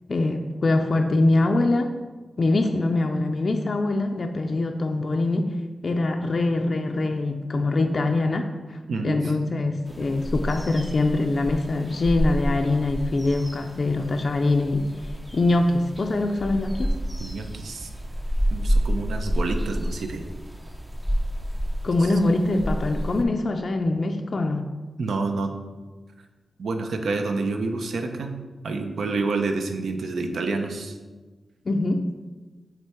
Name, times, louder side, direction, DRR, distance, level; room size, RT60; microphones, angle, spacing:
voice 1, 0.1-1.9 2.4-5.5 5.8-17.0 21.8-24.7 31.7-32.1, left 2 dB, 45° left, 3 dB, 0.4 m, -23 dB
sound 1, 9.9-23.2, equal, 10° right, 0.5 m, -29 dB
voice 2, 17.2-17.9 18.5-20.2 22.0-22.1 25.0-25.5 26.6-28.3 28.6-31.0, right 3 dB, 80° right, 5 dB, 0.7 m, -28 dB
8.2 x 3.3 x 4.4 m, 1.3 s
wide cardioid pair, 140°, 0 cm